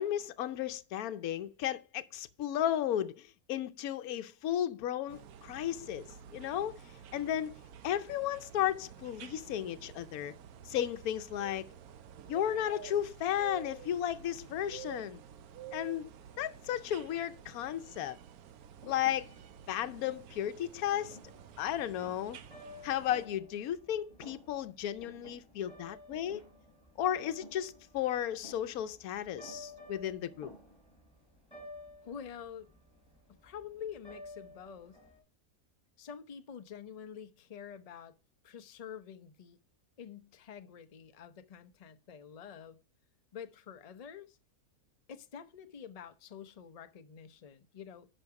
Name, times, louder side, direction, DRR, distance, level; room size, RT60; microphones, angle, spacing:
voice 1, 0.0-6.8 7.1-10.3 10.7-11.7 12.3-15.2 15.7-16.1 16.4-18.2 18.9-19.3 19.7-21.2 21.6-22.4 22.8-26.4 27.0-30.5, left 11 dB, 80° left, 1.2 m, -34 dB
sound 1, 5.1-23.3, right 9 dB, 80° right, 1.2 m, -51 dB
Thump thud, 18.8-23.8 24.1-24.7 25.0-31.1, equal, 55° right, 4.0 m, -56 dB
sound 2, 21.2-35.2, left 1 dB, 5° left, 4.5 m, -53 dB
voice 2, 32.0-32.7 33.3-35.0 36.0-38.2 38.4-39.6 40.0-42.8 43.3-44.4 45.1-48.1, left 8 dB, 40° left, 0.6 m, -47 dB
10.5 x 5.6 x 4.7 m
omnidirectional pair, 1.5 m